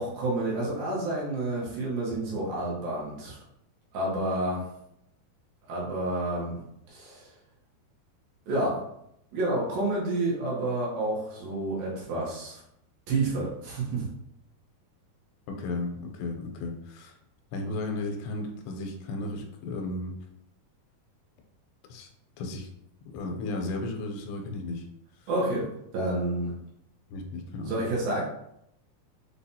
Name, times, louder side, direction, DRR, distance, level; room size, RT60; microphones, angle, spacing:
voice 1, 0.0-3.4 3.9-4.6 5.7-7.2 8.5-8.8 9.3-12.6 13.1-14.0 25.3-25.7 25.9-26.5 27.6-28.2, right 2 dB, 70° right, -5 dB, 2.4 m, -29 dB
voice 2, 15.5-17.1 17.5-20.1 21.9-22.1 22.4-22.7 23.1-24.8 27.1-27.8, left 2 dB, 90° left, 3 dB, 2.7 m, -34 dB
6.8 x 2.3 x 2.7 m, 0.77 s
omnidirectional pair, 4.7 m